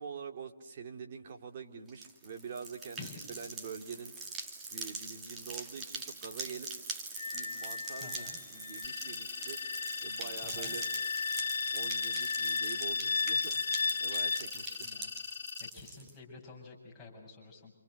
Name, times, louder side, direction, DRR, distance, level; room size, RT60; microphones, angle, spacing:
voice 1, 0.0-4.3 4.7-6.7 7.3-9.6 10.0-10.8 11.7-15.0, right 6 dB, 40° right, 4 dB, 2.8 m, -45 dB
sound 1, 1.9-16.1, right 3 dB, 15° right, 2.5 m, -43 dB
Wind instrument woodwind instrument, 7.2-14.4, left 5 dB, 75° left, 1.4 m, -35 dB
voice 2, 8.0-8.4 10.4-10.8 14.5-15.1 15.6-17.7, left 4 dB, 10° left, -5 dB, 7.5 m, -50 dB
sound 2, 8.8-15.7, left 7 dB, 50° left, 3.4 m, -42 dB
28.5 x 28.0 x 6.6 m, 0.77 s
hypercardioid pair, 155°, 0 cm